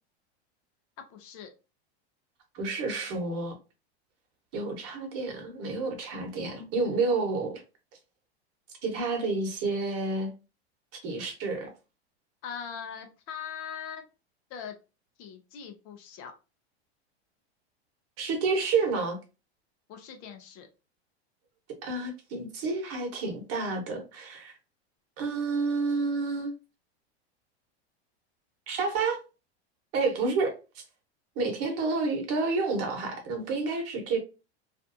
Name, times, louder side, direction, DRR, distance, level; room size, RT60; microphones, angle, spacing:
voice 1, 1.0-1.5 12.4-14.0 14.5-14.7 15.2-16.3 19.9-20.7, left 7 dB, 45° left, 0.6 m, -41 dB
voice 2, 2.5-3.5 4.5-7.6 8.8-10.3 11.0-11.7 18.2-19.2 21.8-24.5 25.2-26.5 28.7-29.2 29.9-30.8 31.4-34.2, right 3 dB, 45° right, 1.0 m, -29 dB
2.5 x 2.2 x 2.5 m
hypercardioid pair, 115°, 33 cm